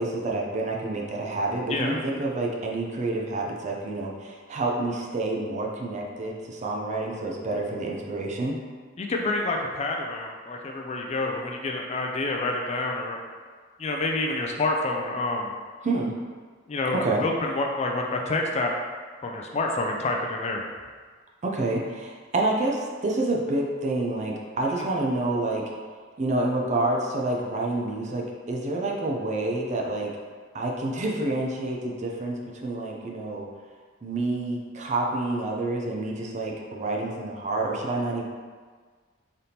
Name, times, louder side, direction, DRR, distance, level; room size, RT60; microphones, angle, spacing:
voice 1, 0.0-8.6 15.8-16.1 16.9-17.2 21.4-25.6 26.2-30.1 30.5-33.5 34.0-38.2, right 2 dB, 35° right, -1 dB, 0.5 m, -28 dB
voice 2, 9.0-13.2 13.8-15.5 16.7-18.7 19.2-20.6 24.8-24.9, left 2 dB, 35° left, 1 dB, 0.4 m, -28 dB
4.0 x 3.4 x 2.8 m, 1.5 s
head